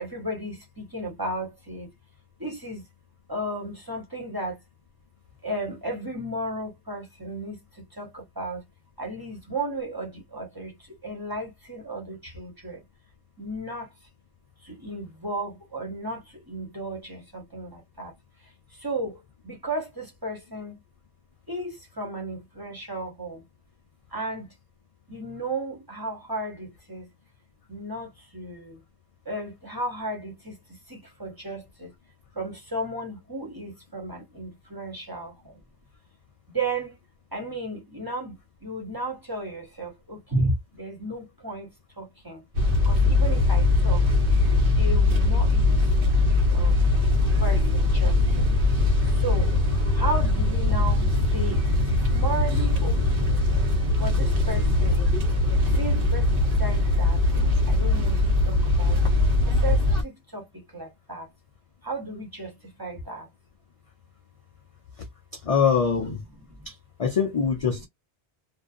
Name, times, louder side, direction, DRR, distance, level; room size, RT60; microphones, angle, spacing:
voice 1, 0.0-1.9 2.4-2.8 3.3-4.6 5.4-8.6 9.0-12.8 13.4-13.9 14.6-18.1 18.8-20.8 21.5-23.4 24.1-24.5 25.1-27.1 27.7-28.8 29.2-31.9 32.3-35.5 36.5-37.0 37.3-42.4 42.8-44.0 44.8-45.9 46.2-46.8 47.2-48.4 49.1-49.5 49.9-53.3 54.0-55.0 55.6-59.0 59.4-61.3 61.8-63.3 66.3-66.7 67.7-67.9, right 1 dB, 20° right, 1.1 m, -34 dB
sound 1, 42.5-60.0, left 2 dB, 55° right, 1.1 m, -21 dB
voice 2, 65.5-66.2 67.0-67.9, left 6 dB, 45° left, 0.5 m, -23 dB
2.5 x 2.2 x 2.4 m
omnidirectional pair, 1.1 m